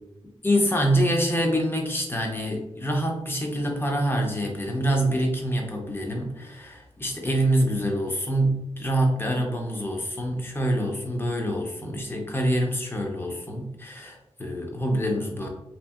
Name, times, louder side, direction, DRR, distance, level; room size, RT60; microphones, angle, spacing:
voice 1, 0.4-15.5, equal, 20° left, 1 dB, 0.6 m, -26 dB
2.7 x 2.7 x 2.3 m, 0.91 s
wide cardioid pair, 105°, 11 cm